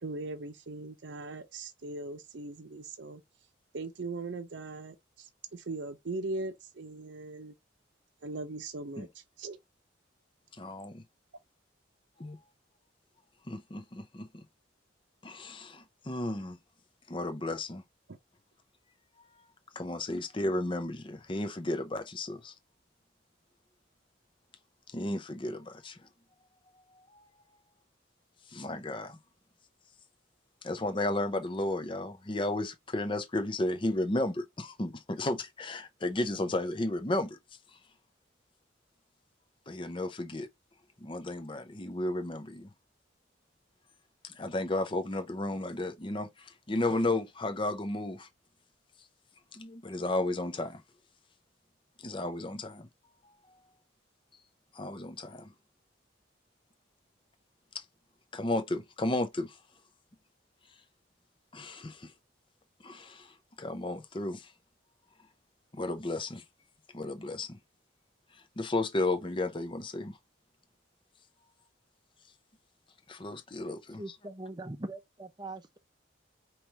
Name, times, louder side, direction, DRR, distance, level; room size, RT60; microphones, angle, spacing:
voice 1, 0.0-3.2 3.7-5.3 5.5-7.5 8.2-9.1 9.4-9.6, right 2 dB, 65° right, 0.6 m, -39 dB
voice 2, 10.6-11.0 12.2-12.4 13.5-14.4 15.2-16.6 17.1-17.8 19.7-22.5 24.9-26.0 26.9-27.0 28.5-29.2 30.6-37.4 39.7-40.5 41.0-42.7 44.2-48.3 49.5-50.8 52.0-52.9 54.7-55.5 57.7-57.8 58.3-59.6 61.5-62.1 62.8-64.5 65.7-66.4 66.9-67.6 68.6-70.2 73.1-74.0, left 2 dB, 25° left, 0.7 m, -33 dB
voice 3, 74.0-75.8, right 2 dB, 20° right, 0.6 m, -41 dB
5.0 x 3.0 x 2.9 m
head